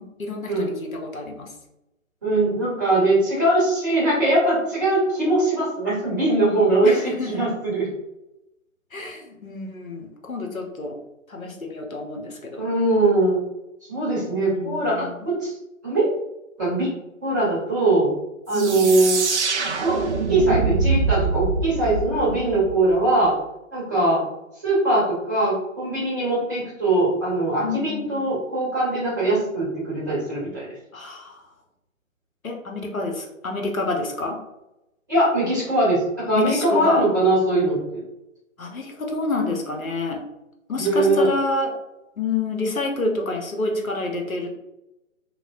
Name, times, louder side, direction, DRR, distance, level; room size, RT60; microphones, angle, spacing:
voice 1, 0.0-1.5 6.8-7.4 8.9-11.0 11.3-12.7 14.3-15.3 18.5-18.9 27.6-28.3 30.9-31.4 32.4-34.4 36.3-37.0 38.6-40.2 40.7-41.7 42.2-44.5, left 3 dB, 90° left, 2 dB, 0.8 m, -28 dB
voice 2, 2.2-7.9 12.6-13.4 13.9-15.5 15.8-16.1 16.6-16.9 17.2-18.1 18.5-19.2 19.8-20.0 20.3-23.3 23.7-24.2 24.6-30.7 35.1-38.0 40.8-41.3, right 2 dB, 15° right, -9 dB, 0.7 m, -21 dB
sound 1, 18.5-23.1, right 4 dB, 60° right, 0.5 m, -24 dB
3.3 x 2.0 x 2.4 m, 0.91 s
figure-of-eight pair, 145°, 40 cm